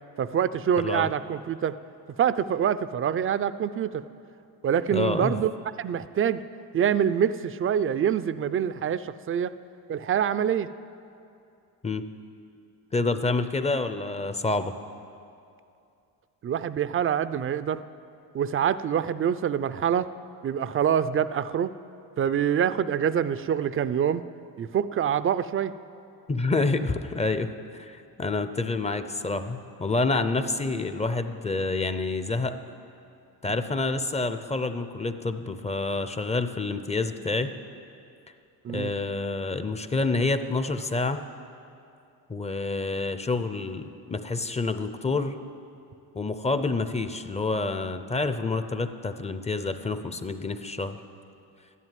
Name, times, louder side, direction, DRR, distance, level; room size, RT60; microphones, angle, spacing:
voice 1, 0.2-1.7 2.2-4.0 4.6-5.5 5.8-6.4 6.7-9.5 9.9-10.7 16.4-17.8 18.3-20.1 20.4-21.7 22.2-24.2 24.6-25.7 38.6-38.9, right 8 dB, 35° right, 14 dB, 0.4 m, -25 dB
voice 2, 0.8-1.1 4.9-5.4 11.8-12.0 12.9-14.7 26.3-32.6 33.4-37.5 38.7-41.2 42.3-45.4 46.1-51.0, left 3 dB, 15° left, 10 dB, 0.6 m, -28 dB
12.5 x 11.0 x 9.2 m, 2.5 s
cardioid pair, 130°, 39 cm